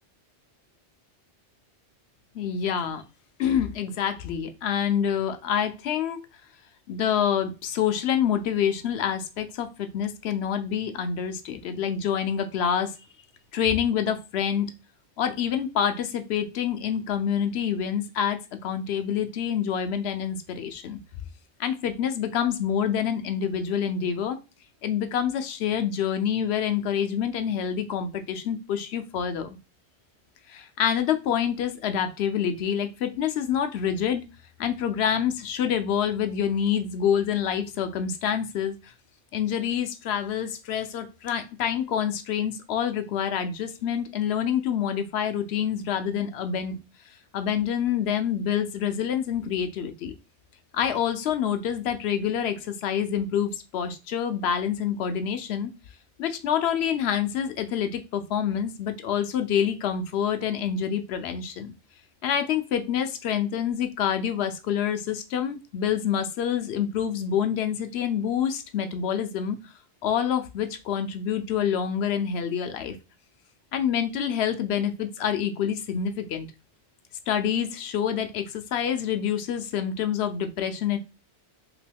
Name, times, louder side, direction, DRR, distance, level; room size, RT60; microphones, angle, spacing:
voice 1, 2.3-3.0 3.4-6.2 6.9-12.9 13.5-14.7 15.2-21.0 21.6-24.4 24.8-29.6 30.5-34.2 34.6-38.9 39.3-46.8 47.3-50.1 50.7-55.7 56.2-61.7 62.2-69.6 70.0-73.0 73.7-76.5 77.3-81.0, left 8 dB, 70° left, 9 dB, 0.8 m, -27 dB
3.0 x 2.9 x 3.3 m, 0.28 s
omnidirectional pair, 1.2 m